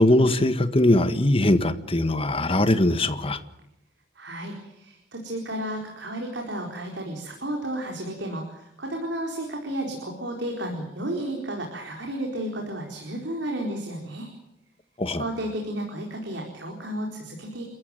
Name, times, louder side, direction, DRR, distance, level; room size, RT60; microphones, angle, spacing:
voice 1, 0.0-3.4 15.0-15.2, left 1 dB, 30° left, 1.7 m, -21 dB
voice 2, 4.1-14.3 15.1-17.6, right 1 dB, 85° right, 4.5 m, -32 dB
29.5 x 14.5 x 9.3 m
head